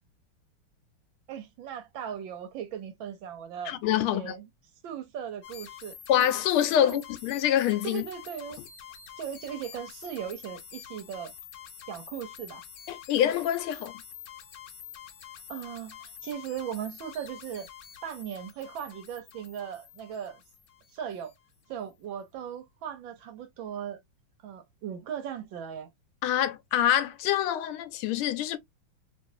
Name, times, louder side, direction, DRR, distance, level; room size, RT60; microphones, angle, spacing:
voice 1, 1.3-4.5 4.8-5.9 6.8-7.0 7.8-8.6 9.2-11.3 11.9-12.6 15.5-17.7 18.0-20.4 20.9-21.3 21.7-24.0 24.4-25.9, right 9 dB, 70° right, 1.4 m, -38 dB
voice 2, 3.7-4.3 6.1-8.0 12.9-13.9 26.2-28.6, left 11 dB, 80° left, 1.5 m, -26 dB
sound 1, 5.4-21.3, left 8 dB, 65° left, 1.3 m, -47 dB
3.2 x 3.0 x 2.6 m
omnidirectional pair, 2.4 m